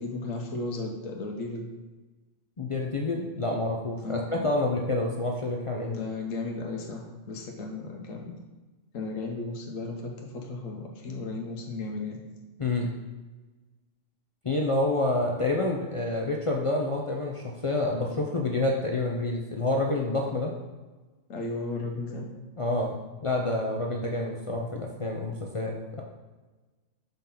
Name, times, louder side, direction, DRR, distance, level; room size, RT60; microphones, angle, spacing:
voice 1, 0.0-1.7 4.0-4.2 5.9-8.3 8.9-12.2 21.3-22.3, left 3 dB, 80° left, 1 dB, 1.2 m, -35 dB
voice 2, 2.6-6.0 12.6-12.9 14.4-20.5 22.6-23.0 23.2-26.0, left 2 dB, 55° left, 0 dB, 0.3 m, -28 dB
5.3 x 3.8 x 5.7 m, 1.2 s
omnidirectional pair, 1.3 m